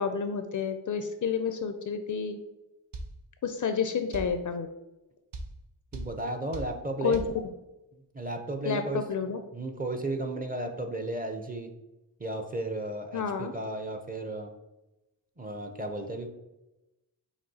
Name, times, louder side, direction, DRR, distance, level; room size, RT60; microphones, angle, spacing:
voice 1, 0.0-2.4 3.4-4.7 7.0-7.2 8.6-9.4 13.1-13.5, left 6 dB, 45° left, 8 dB, 0.4 m, -30 dB
sound 1, 2.9-3.1 4.1-4.3 5.3-5.5 5.9-6.1 6.5-6.7 7.1-7.3, right 2 dB, 65° right, 0.7 m, -37 dB
voice 2, 5.9-7.2 7.9-9.0 9.5-11.7 12.2-14.5 15.4-16.3, right 2 dB, 20° right, 5 dB, 0.5 m, -34 dB
5.9 x 2.3 x 2.7 m, 0.97 s
supercardioid pair, 45°, 46 cm